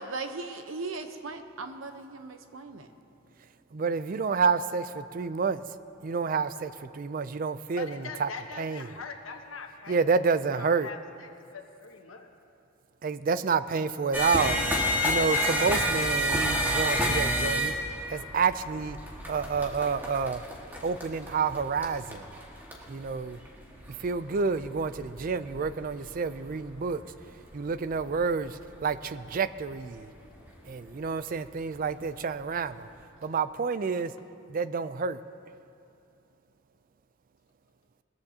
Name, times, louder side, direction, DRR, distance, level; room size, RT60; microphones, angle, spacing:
voice 1, 0.0-2.9, right 3 dB, 80° right, 7 dB, 0.9 m, -38 dB
voice 2, 3.7-5.6 6.0-8.3 8.6-8.9 9.9-10.9 13.0-14.6 15.0-17.7 18.1-19.0 19.3-20.4 20.8-22.3 22.9-23.4 24.0-27.0 27.5-30.1 30.7-32.9 33.2-34.1 34.5-35.2, right 5 dB, 45° right, 14 dB, 0.4 m, -29 dB
voice 3, 7.8-12.3, left 4 dB, 90° left, 4 dB, 1.2 m, -43 dB
sound 1, 14.1-29.5 30.2-30.4 30.8-31.4 32.0-32.1 32.6-32.7, equal, 10° right, 1.7 m, -31 dB
20.5 x 14.0 x 2.8 m, 2.7 s
head